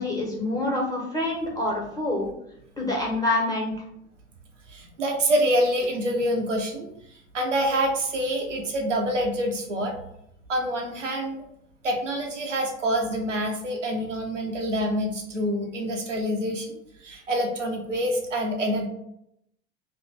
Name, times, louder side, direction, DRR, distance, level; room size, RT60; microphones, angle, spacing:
voice 1, 0.0-2.3 2.8-3.7, left 2 dB, 10° left, -2 dB, 1.3 m, -26 dB
voice 2, 4.7-6.9 7.3-10.0 10.5-11.4 11.8-16.7 17.0-18.9, equal, 90° right, 1 dB, 0.7 m, -26 dB
2.9 x 2.5 x 3.5 m, 0.77 s
figure-of-eight pair, 75°, 36 cm